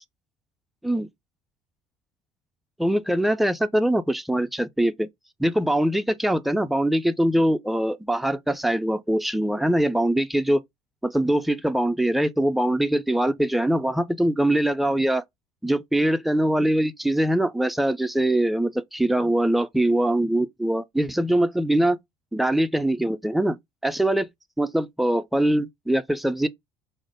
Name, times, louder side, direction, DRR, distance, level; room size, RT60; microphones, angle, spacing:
voice 1, 2.8-5.1 5.4-10.6 11.0-15.2 15.6-22.0 22.3-24.3 24.6-26.5, right 1 dB, ahead, 0.3 m, -23 dB
3.0 x 2.0 x 3.4 m
hypercardioid pair, 60°, 16 cm